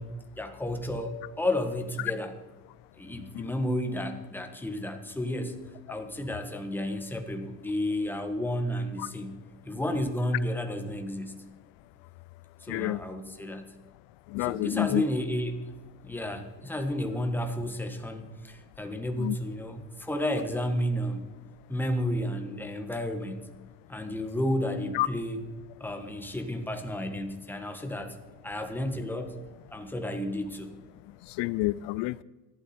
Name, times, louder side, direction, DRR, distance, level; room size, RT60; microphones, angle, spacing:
voice 1, 0.0-2.3 3.0-5.6 5.9-9.4 9.6-11.3 12.6-13.7 14.4-15.7 16.0-21.2 21.7-23.4 23.9-25.4 25.8-28.2 28.4-29.4 29.7-30.7, left 1 dB, 5° left, 1.4 m, -32 dB
voice 2, 12.7-13.0 14.3-15.0 19.2-19.3 24.9-25.1 31.4-32.2, left 19 dB, 80° left, 0.5 m, -28 dB
17.5 x 12.0 x 4.4 m
cardioid pair, 140°, 42 cm